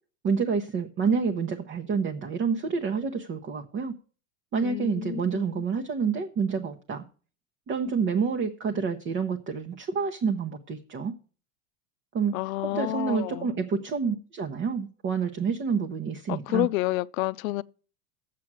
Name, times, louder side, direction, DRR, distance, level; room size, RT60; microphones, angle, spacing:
voice 1, 0.2-3.9 4.5-7.0 7.7-11.1 12.1-12.4 12.6-16.7, right 5 dB, 30° right, 0.9 m, -28 dB
voice 2, 4.6-5.6 12.3-13.5 16.3-17.6, left 19 dB, 75° left, 0.6 m, -29 dB
7.6 x 7.6 x 6.1 m
supercardioid pair, 120°, 42 cm